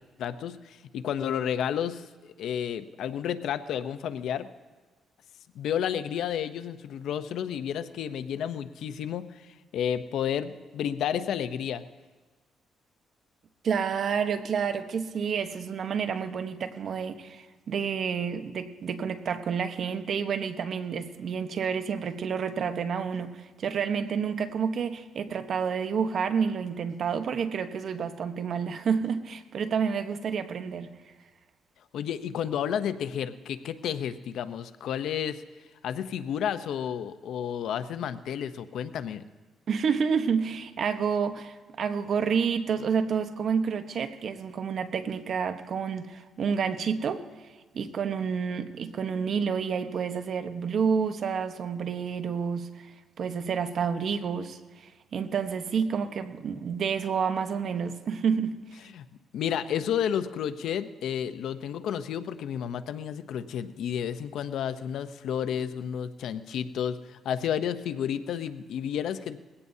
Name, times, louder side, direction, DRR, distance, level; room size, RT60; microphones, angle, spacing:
voice 1, 0.2-4.5 5.5-11.8 31.9-35.4 35.8-39.2 58.8-59.1 59.3-69.4, left 9 dB, 75° left, 12 dB, 0.7 m, -31 dB
voice 2, 13.6-30.9 39.7-47.2 47.7-52.9 53.2-54.6 55.1-58.6, right 6 dB, 60° right, 9 dB, 1.1 m, -29 dB
21.0 x 16.5 x 2.8 m, 1.3 s
cardioid pair, 90°, 0 cm